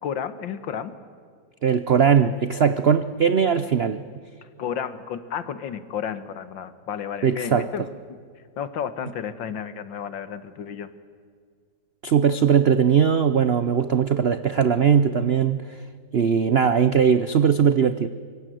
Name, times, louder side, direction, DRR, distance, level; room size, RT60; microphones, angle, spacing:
voice 1, 0.0-1.0 4.6-8.0 8.6-10.9, left 8 dB, 75° left, 13 dB, 2.0 m, -32 dB
voice 2, 1.6-4.0 7.2-7.7 12.0-15.6 16.1-18.1, right 7 dB, 90° right, 13 dB, 0.5 m, -19 dB
25.5 x 24.0 x 7.7 m, 2.1 s
omnidirectional pair, 2.1 m